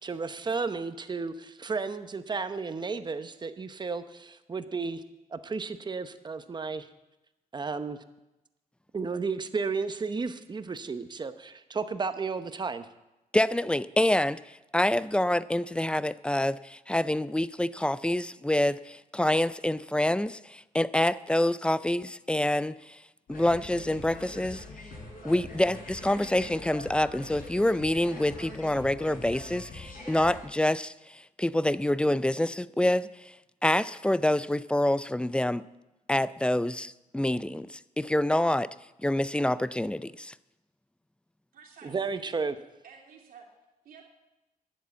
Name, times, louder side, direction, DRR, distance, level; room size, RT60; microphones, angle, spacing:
voice 1, 0.0-5.0 5.3-6.9 7.5-8.0 8.9-12.9 41.8-42.5, right 4 dB, 30° right, 0.8 m, -33 dB
voice 2, 13.3-23.0 23.3-24.6 25.2-33.1 33.6-35.6 36.1-38.7 39.0-40.3, left 1 dB, 5° left, 0.4 m, -27 dB
sound 1, 23.3-30.5, left 2 dB, 75° left, 5.9 m, -43 dB
voice 3, 41.5-42.3 42.8-43.5 43.8-44.0, right 6 dB, 80° right, 2.8 m, -51 dB
11.5 x 7.5 x 8.2 m
cardioid pair, 95°, 15 cm